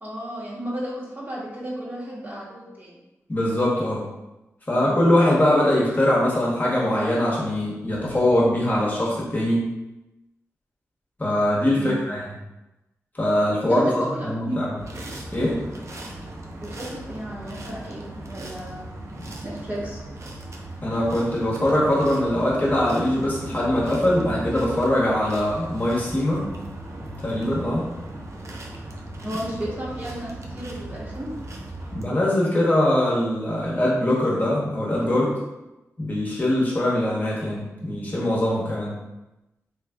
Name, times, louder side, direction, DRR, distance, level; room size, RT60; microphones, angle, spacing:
voice 1, 0.0-3.0 4.7-5.1 11.7-12.0 13.7-14.5 16.6-18.9 19.4-20.0 29.2-31.3, right 1 dB, 35° right, -6 dB, 1.2 m, -33 dB
voice 2, 3.3-4.0 4.7-9.6 11.2-12.2 13.1-14.7 15.3-15.6 19.2-19.3 20.8-26.5 27.2-27.9 31.9-35.3 36.0-38.9, left 1 dB, 30° left, -5 dB, 1.0 m, -22 dB
sound 1, 14.8-32.1, right 1 dB, 60° right, 0.5 m, -37 dB
3.2 x 3.2 x 2.3 m, 0.98 s
cardioid pair, 55°, 6 cm